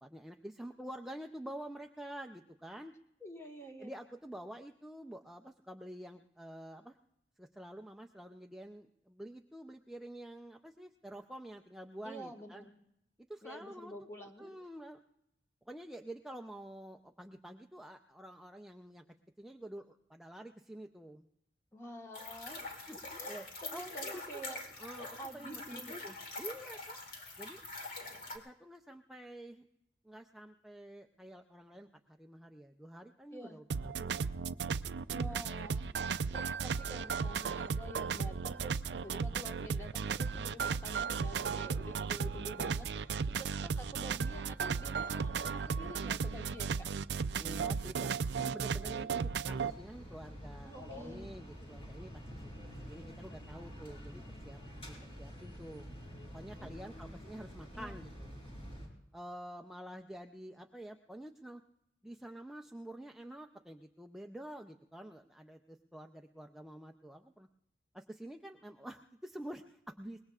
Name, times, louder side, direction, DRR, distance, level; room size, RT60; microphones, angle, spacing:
voice 1, 0.0-2.9 3.8-7.0 7.4-12.6 13.2-14.1 14.4-15.0 15.7-19.0 19.4-21.3 22.9-23.0 23.3-24.4 24.7-27.0 27.4-27.6 28.3-29.6 30.0-33.6 33.9-34.3 47.4-48.1 48.4-50.7 51.0-54.6 54.8-55.8 56.3-58.3 59.1-61.6 62.0-67.5 67.9-70.2, right 1 dB, ahead, 3 dB, 0.5 m, -48 dB
voice 2, 3.2-3.9 12.0-12.7 13.4-14.6 21.7-22.6 23.2-24.6 25.2-26.0 33.3-33.6 35.1-47.0 50.6-51.4 56.6-57.1 57.7-58.0, equal, 15° left, 2 dB, 1.5 m, -48 dB
sound 1, 22.1-28.4, left 2 dB, 50° left, 2.6 m, -44 dB
sound 2, 33.7-49.7, right 5 dB, 70° right, 0.4 m, -35 dB
sound 3, 49.5-58.9, equal, 35° left, 4.5 m, -48 dB
24.0 x 21.0 x 2.4 m, 0.82 s
head